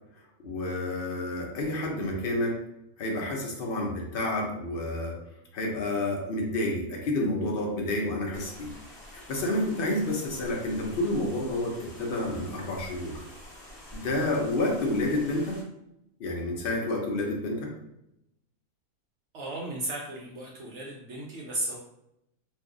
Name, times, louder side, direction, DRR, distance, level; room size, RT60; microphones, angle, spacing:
voice 1, 0.4-2.6 3.0-5.1 5.5-8.7 9.1-13.2 13.9-15.6 16.2-17.7, left 1 dB, 60° left, 0 dB, 0.6 m, -29 dB
sound 1, 8.3-15.6, left 1 dB, 5° left, 1.1 m, -47 dB
voice 2, 19.3-21.8, right 1 dB, 65° right, -2 dB, 0.7 m, -35 dB
2.6 x 2.3 x 3.6 m, 0.82 s
omnidirectional pair, 1.6 m